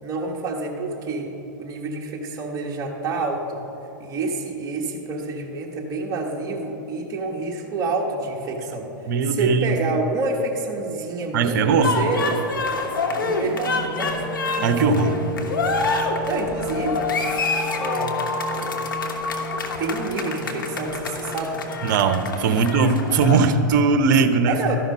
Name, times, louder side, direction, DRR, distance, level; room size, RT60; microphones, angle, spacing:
voice 1, 0.0-1.3 1.6-3.6 4.0-8.9 9.2-12.4 13.2-14.3 14.5-14.8 16.2-17.1 17.8-18.2 18.5-18.7 19.8-21.6 22.5-22.7 24.5-24.8, right 3 dB, 30° right, 0 dB, 1.4 m, -28 dB
voice 2, 9.1-9.7 11.3-12.0 14.6-15.2 21.8-24.5, right 4 dB, 60° right, 8 dB, 0.8 m, -19 dB
sound 1, 11.8-23.5, left 3 dB, 90° left, 1.1 m, -27 dB
sound 2, 13.0-21.9, left 1 dB, 20° left, 1.9 m, -34 dB
12.5 x 5.8 x 5.5 m, 2.9 s
hypercardioid pair, 115°, 11 cm